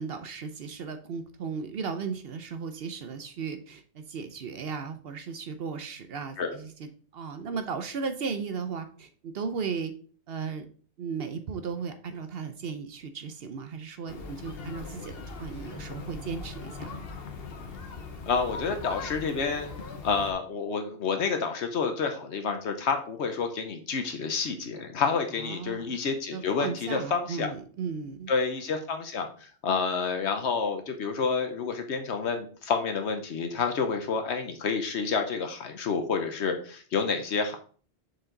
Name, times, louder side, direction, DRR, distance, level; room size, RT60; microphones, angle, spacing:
voice 1, 0.0-9.9 10.3-10.7 11.0-15.1 15.4-17.0 25.4-26.0 26.3-28.3, right 5 dB, 65° right, 8 dB, 0.8 m, -36 dB
sound 1, 14.1-20.3, left 4 dB, 60° left, 1.1 m, -40 dB
voice 2, 18.3-19.7 20.0-27.5 28.3-37.6, left 5 dB, 80° left, 6 dB, 1.1 m, -29 dB
6.4 x 4.7 x 3.9 m, 0.43 s
omnidirectional pair, 1.1 m